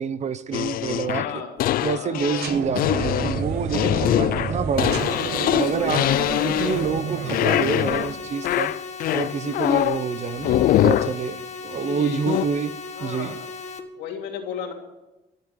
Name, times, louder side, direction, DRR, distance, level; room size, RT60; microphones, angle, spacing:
voice 1, 0.0-1.2 1.8-5.0 5.5-6.0 6.4-8.7 9.1-12.7 13.0-13.3, right 6 dB, 45° right, 13 dB, 1.0 m, -27 dB
sound 1, 0.5-7.0 7.3-8.1 8.4-10.0 10.4-11.2 12.3-12.5, left 14 dB, 60° left, 0.4 m, -23 dB
voice 2, 1.1-1.6 1.9-2.2 3.7-4.2 5.7-6.1 9.4-9.9 11.7-12.5 12.9-13.4 13.9-14.7, left 7 dB, 80° left, 2 dB, 3.1 m, -35 dB
sound 2, 2.4-8.3, right 6 dB, 70° right, 1.5 m, -30 dB
sound 3, 4.8-13.8, left 3 dB, 45° left, 1.7 m, -37 dB
14.0 x 8.3 x 9.3 m, 1.0 s
cardioid pair, 110°, 17 cm